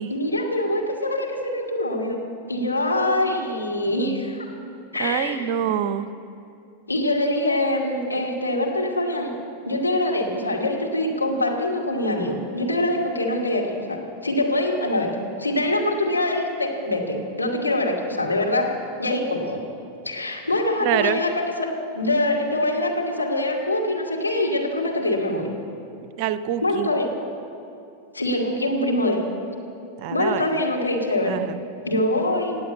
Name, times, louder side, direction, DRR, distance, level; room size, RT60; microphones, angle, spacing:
voice 1, 0.1-2.2 2.5-4.5 4.9-5.5 6.9-9.3 9.6-15.1 15.4-18.7 19.0-19.6 20.0-21.3 21.6-21.7 21.9-25.5 26.6-27.1 28.1-29.2 30.1-31.4 31.8-32.6, left 1 dB, 80° left, -1 dB, 2.3 m, -24 dB
voice 2, 4.7-6.1 20.8-21.2 26.2-26.9 30.0-30.4 31.2-31.6, right 10 dB, 45° right, 13 dB, 0.6 m, -26 dB
18.5 x 8.3 x 8.2 m, 2.6 s
figure-of-eight pair, 90°, 0 cm